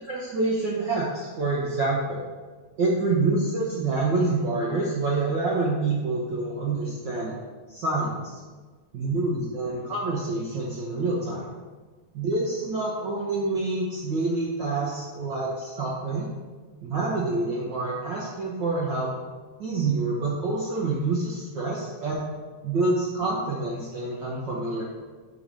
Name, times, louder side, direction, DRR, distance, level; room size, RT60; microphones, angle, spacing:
voice 1, 0.1-2.2 2.8-7.3 7.7-8.4 8.9-11.5 12.1-16.3 16.8-19.1 19.6-22.3 22.6-24.8, right 3 dB, 90° right, -5 dB, 1.0 m, -27 dB
6.4 x 4.0 x 5.2 m, 1.4 s
omnidirectional pair, 3.4 m